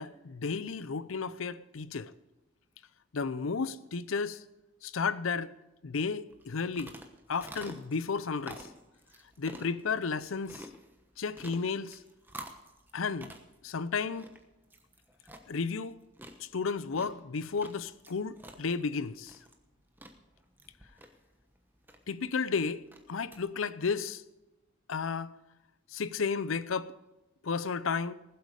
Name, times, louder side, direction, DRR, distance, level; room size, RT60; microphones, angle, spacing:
voice 1, 0.0-2.1 3.1-4.4 4.8-5.5 5.8-6.9 7.3-8.7 9.4-10.7 11.2-12.0 12.9-13.3 13.6-14.3 15.5-15.9 16.4-19.4 22.1-22.8 23.1-24.2 24.9-25.3 25.9-26.9 27.4-28.1, left 5 dB, 75° left, 0.6 m, -33 dB
sound 1, 6.3-23.4, right 1 dB, 10° right, 1.0 m, -51 dB
20.0 x 7.9 x 4.9 m
head